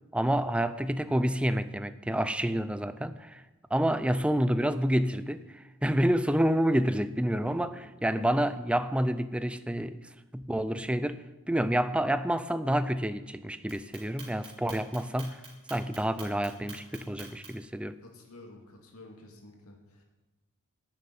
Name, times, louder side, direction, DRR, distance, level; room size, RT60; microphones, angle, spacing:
voice 1, 0.1-3.4 3.7-15.4 15.7-18.0, right 1 dB, 5° right, 0.4 m, -28 dB
voice 2, 7.3-7.9 18.0-20.0, left 2 dB, 75° left, 2.4 m, -51 dB
Clock, 13.7-17.7, right 5 dB, 25° right, 3.7 m, -47 dB
11.5 x 7.5 x 9.2 m
head